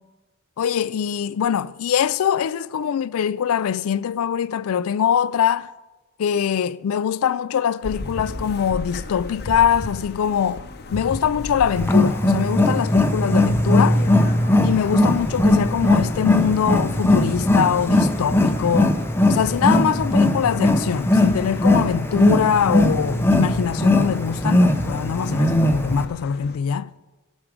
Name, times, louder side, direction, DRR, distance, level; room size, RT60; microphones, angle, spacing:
voice 1, 0.6-5.7 6.2-14.0 14.6-19.0 19.3-26.9, left 8 dB, 65° left, 0.3 m, -23 dB
sound 1, 7.8-26.6, left 2 dB, 45° left, 0.8 m, -35 dB
Wild animals, 11.8-26.1, left 1 dB, 10° left, 0.6 m, -19 dB
17.0 x 6.2 x 4.9 m
head